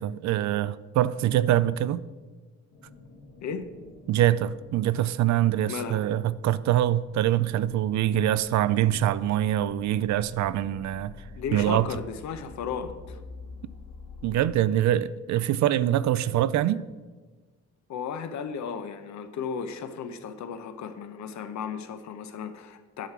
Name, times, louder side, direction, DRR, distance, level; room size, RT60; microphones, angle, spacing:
voice 1, 0.0-2.0 4.1-11.9 14.2-16.8, right 12 dB, 70° right, 0.4 m, -24 dB
sound 1, 2.7-14.4, left 3 dB, 85° left, 2.0 m, -48 dB
voice 2, 5.7-6.0 11.3-13.2 17.9-23.1, left 6 dB, 70° left, 0.9 m, -35 dB
10.5 x 5.8 x 4.7 m
cardioid pair, 90°, 30 cm